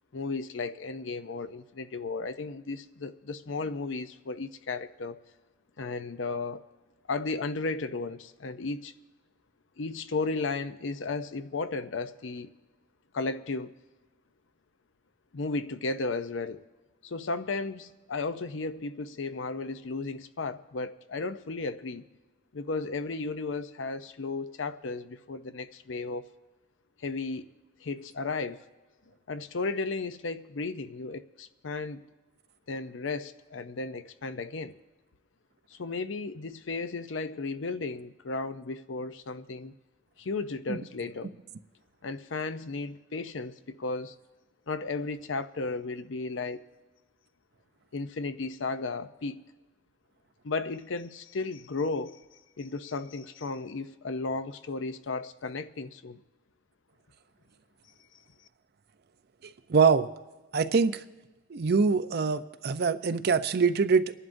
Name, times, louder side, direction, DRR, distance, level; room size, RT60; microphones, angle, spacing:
voice 1, 0.1-5.2 5.8-6.6 7.1-8.9 9.8-12.5 13.1-13.7 15.3-16.6 17.0-22.0 22.5-26.3 27.0-27.5 27.8-28.6 29.3-32.0 32.7-34.8 35.7-39.7 40.2-41.3 42.0-44.2 44.7-46.6 47.9-49.4 50.4-52.2 52.6-56.2, left 3 dB, 75° left, 0.6 m, -34 dB
voice 2, 59.7-60.1 60.5-61.0 61.5-64.1, right 5 dB, 55° right, 0.5 m, -24 dB
29.5 x 11.0 x 2.6 m
head